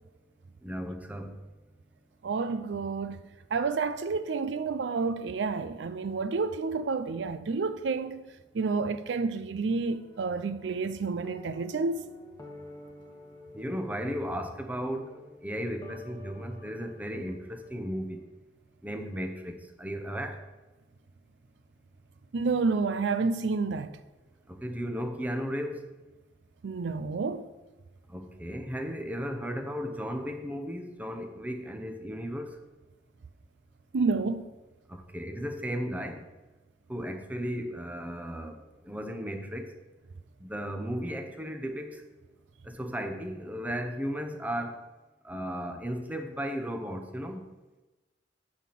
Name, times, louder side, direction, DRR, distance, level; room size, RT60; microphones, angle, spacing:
voice 1, 0.6-1.3 13.5-15.1 15.4-18.2 18.8-20.3 24.6-25.8 28.1-32.6 34.9-36.2 36.9-38.6 38.9-39.7 40.4-42.0 42.7-44.8 45.2-47.4, equal, 10° right, 0.8 m, -35 dB
voice 2, 2.2-3.2 3.5-8.3 8.5-12.0 22.3-23.9 26.6-27.5 33.9-34.5, right 4 dB, 70° right, 0.4 m, -29 dB
sound 1, 9.7-18.1, left 1 dB, 20° left, 1.3 m, -51 dB
9.2 x 4.3 x 7.4 m
head